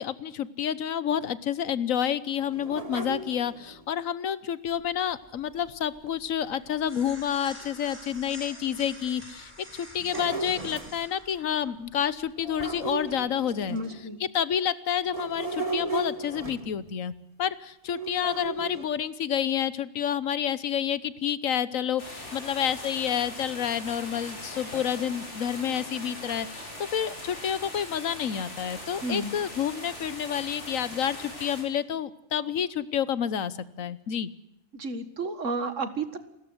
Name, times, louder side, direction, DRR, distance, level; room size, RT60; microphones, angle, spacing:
voice 1, 0.0-13.8 14.3-17.1 17.4-34.3, left 9 dB, 80° left, 17 dB, 1.4 m, -29 dB
sound 1, 2.4-3.8 6.1-6.2 6.7-6.8 7.5-7.6 8.2-8.3 9.7-11.0 12.4-14.2 15.1-17.0 17.9-18.9, right 3 dB, 25° right, 1.9 m, -36 dB
sound 2, 4.7-13.1, equal, 10° right, 7.4 m, -48 dB
voice 2, 13.7-14.2 29.0-29.3 34.7-36.2, right 2 dB, 70° right, 11 dB, 2.1 m, -31 dB
sound 3, 22.0-31.6, left 1 dB, 60° left, 6.9 m, -41 dB
28.5 x 13.5 x 8.0 m, 0.85 s
omnidirectional pair, 1.4 m